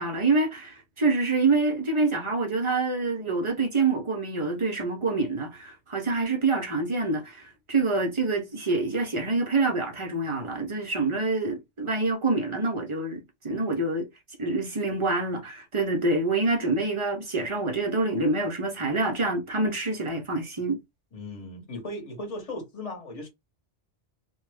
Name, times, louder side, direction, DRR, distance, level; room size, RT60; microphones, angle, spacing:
voice 1, 0.0-14.1 14.4-20.8, right 3 dB, 40° right, 0.4 m, -26 dB
voice 2, 21.1-23.3, left 1 dB, 35° left, 0.9 m, -37 dB
2.2 x 2.0 x 3.2 m
omnidirectional pair, 1.2 m